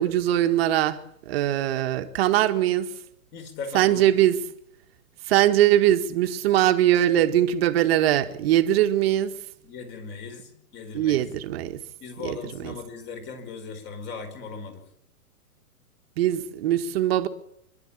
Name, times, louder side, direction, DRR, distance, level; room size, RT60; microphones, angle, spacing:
voice 1, 0.0-2.9 3.7-4.4 5.3-9.4 10.9-11.8 12.2-12.4 12.6-12.7 16.2-17.3, right 12 dB, 40° right, 1.9 m, -21 dB
voice 2, 3.3-4.1 9.6-11.2 12.0-14.9, left 4 dB, 25° left, 5.0 m, -38 dB
27.5 x 12.5 x 8.7 m
hypercardioid pair, 145°, 45 cm